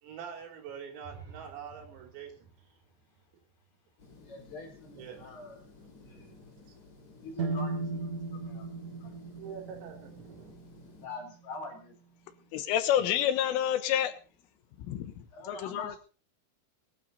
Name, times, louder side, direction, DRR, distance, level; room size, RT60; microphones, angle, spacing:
voice 1, 0.0-2.5 5.0-5.4 6.1-6.7 9.1-10.5, right 7 dB, 85° right, 3 dB, 6.2 m, -45 dB
sound 1, 1.0-4.8, right 6 dB, 35° right, 8.0 m, -54 dB
sound 2, 4.0-11.1, left 3 dB, 30° left, 1.9 m, -55 dB
voice 2, 4.2-5.6 6.0-6.4 7.2-9.1 11.0-12.0 15.3-16.0, left 3 dB, 55° left, 2 dB, 5.6 m, -45 dB
sound 3, 7.4-11.3, right 3 dB, 65° right, 1.7 m, -37 dB
voice 3, 12.5-14.1 14.9-15.1 15.5-15.9, left 10 dB, 80° left, 10 dB, 3.6 m, -28 dB
21.5 x 12.0 x 4.1 m, 0.36 s
omnidirectional pair, 6.0 m